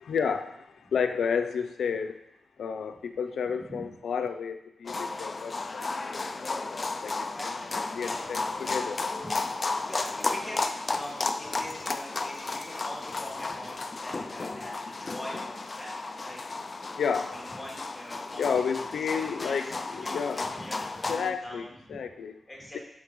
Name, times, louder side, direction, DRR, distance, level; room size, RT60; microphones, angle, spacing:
voice 1, 0.0-2.2 2.6-5.8 6.1-6.3 6.6-9.0 12.5-12.6 17.0-17.4 18.4-20.5 21.1-22.4, left 6 dB, 85° left, 8 dB, 0.5 m, -31 dB
voice 2, 3.4-3.9 7.3-8.2 9.2-9.4 9.8-16.4 17.3-18.6 18.9-22.0 22.5-22.8, equal, 5° left, -4 dB, 2.1 m, -43 dB
sound 1, 4.9-21.3, left 3 dB, 30° left, 0.4 m, -33 dB
12.0 x 5.7 x 3.1 m, 0.82 s
wide cardioid pair, 150°, 0 cm